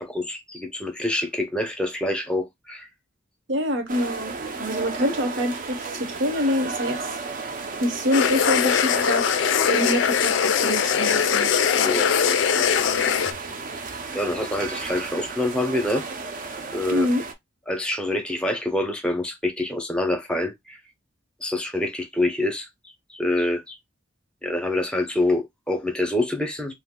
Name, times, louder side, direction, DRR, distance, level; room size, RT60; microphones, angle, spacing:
voice 1, 0.0-2.9 11.8-12.7 14.1-16.0 16.7-17.1 17.7-20.8 21.4-22.7 23.1-23.8 24.4-26.7, left 1 dB, 5° left, 0.7 m, -26 dB
voice 2, 3.5-7.0 7.8-9.3 9.7-12.0 12.8-13.2 16.9-17.2, equal, 80° right, 0.9 m, -26 dB
sound 1, 3.9-17.3, right 4 dB, 45° right, 0.5 m, -34 dB
sound 2, 8.1-13.3, left 8 dB, 75° left, 0.4 m, -21 dB
2.6 x 2.5 x 3.7 m
head